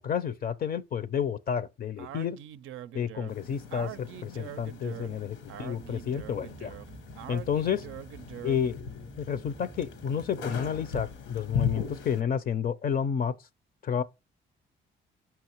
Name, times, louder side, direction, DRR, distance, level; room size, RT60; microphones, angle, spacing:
voice 1, 0.0-2.4 2.9-6.7 7.3-7.9 8.4-13.3 13.8-14.0, left 8 dB, 50° left, 0.4 m, -30 dB
Speech, 2.0-8.7, right 12 dB, 85° right, 0.4 m, -43 dB
sound 1, 3.3-12.2, left 6 dB, 90° left, 1.1 m, -39 dB
Boat Water vehicle, 5.8-10.8, right 3 dB, 15° right, 0.5 m, -50 dB
5.8 x 5.7 x 2.9 m
cardioid pair, 90°, 20 cm